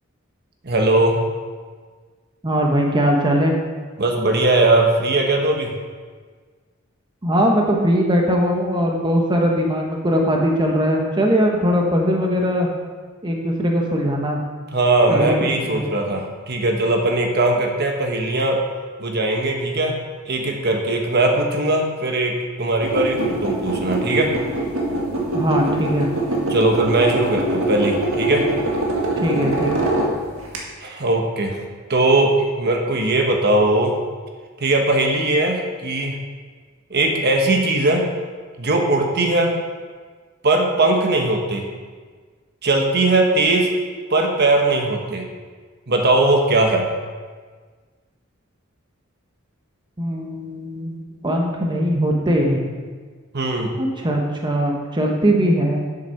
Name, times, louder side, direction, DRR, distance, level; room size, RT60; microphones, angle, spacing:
voice 1, 0.6-1.2 4.0-5.8 14.7-18.6 19.0-20.0 20.3-24.3 26.5-28.5 30.8-31.6 31.9-34.0 34.6-36.2 36.9-38.1 38.6-39.5 40.4-41.7 42.6-43.7 44.1-45.3 45.9-46.9 53.3-53.8, right 2 dB, 50° right, 2 dB, 1.2 m, -19 dB
voice 2, 2.4-3.5 7.2-12.7 13.2-14.4 15.1-15.3 15.6-15.8 25.3-26.1 29.2-29.7 50.0-51.0 51.2-52.6 53.8-55.8, equal, 20° right, 0 dB, 1.0 m, -20 dB
sound 1, 22.8-30.6, right 2 dB, 85° right, 1.8 m, -23 dB
8.1 x 6.8 x 5.8 m, 1.5 s
head